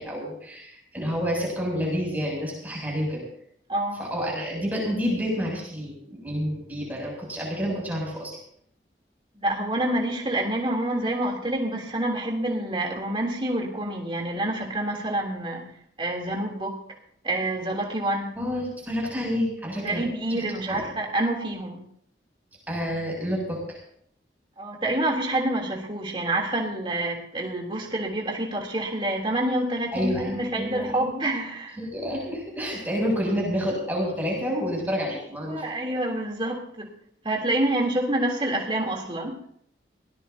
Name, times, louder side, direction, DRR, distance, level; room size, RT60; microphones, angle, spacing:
voice 1, 0.0-3.3 4.0-8.4 18.4-20.0 20.7-20.8 22.7-23.8 29.9-30.8 31.8-35.6, equal, 10° right, -3 dB, 7.5 m, -29 dB
voice 2, 3.7-4.0 9.3-15.7 16.0-16.8 17.2-18.4 19.8-21.8 24.6-31.8 35.4-36.9 37.2-39.4, right 1 dB, 30° right, 0 dB, 3.2 m, -27 dB
23.0 x 18.5 x 2.8 m, 0.66 s
head